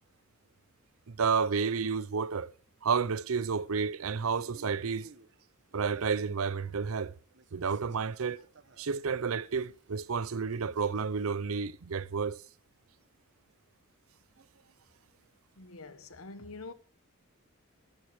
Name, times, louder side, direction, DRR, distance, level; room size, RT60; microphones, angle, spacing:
voice 1, 1.1-2.5 2.8-5.1 5.7-7.1 7.5-8.4 8.8-12.4, right 5 dB, 75° right, 0.6 m, -31 dB
Male speech man speaking, 4.1-7.1 7.3-11.5, right 3 dB, 55° right, 1.1 m, -60 dB
voice 2, 15.6-16.7, left 3 dB, 75° left, 1.2 m, -45 dB
14.0 x 11.5 x 4.8 m
head